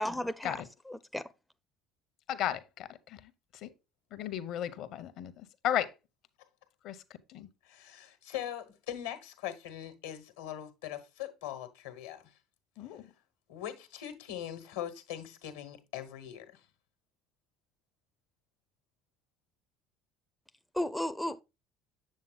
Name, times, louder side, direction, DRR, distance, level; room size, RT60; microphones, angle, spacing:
voice 1, 0.0-1.3 20.7-21.4, left 1 dB, 5° left, 0.5 m, -34 dB
voice 2, 2.3-3.2 3.6-3.7 4.1-5.3 5.6-5.9 6.8-7.0 7.3-7.5 12.8-13.0, left 11 dB, 60° left, 0.8 m, -34 dB
voice 3, 7.6-12.3 13.5-16.6, left 11 dB, 80° left, 1.2 m, -41 dB
7.4 x 7.3 x 2.3 m
hypercardioid pair, 70°, 0 cm